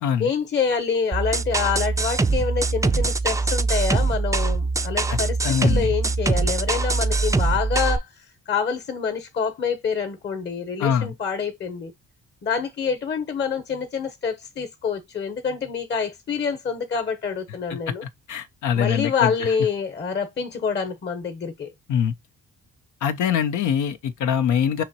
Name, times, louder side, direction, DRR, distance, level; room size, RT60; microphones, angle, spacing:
voice 1, 0.2-11.9 12.4-18.0 18.8-21.7, left 6 dB, 35° left, 1.0 m, -26 dB
sound 1, 1.1-8.0, right 3 dB, 10° right, 0.4 m, -23 dB
voice 2, 5.4-5.9 10.8-11.1 17.7-17.8 18.3-19.3 21.9-22.1 23.0-24.8, left 8 dB, 75° left, 0.8 m, -23 dB
5.6 x 3.0 x 2.9 m
cardioid pair, 90°, 30 cm